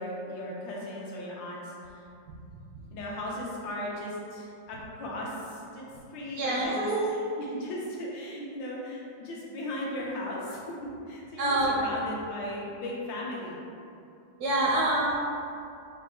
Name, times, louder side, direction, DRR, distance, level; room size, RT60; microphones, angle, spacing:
voice 1, 0.0-1.7 2.9-5.8 6.1-13.6, left 1 dB, 80° left, -4 dB, 1.5 m, -37 dB
voice 2, 6.4-7.2 11.4-11.7 14.4-15.2, right 2 dB, 70° right, -4 dB, 0.9 m, -26 dB
4.2 x 2.1 x 4.3 m, 2.6 s
omnidirectional pair, 2.0 m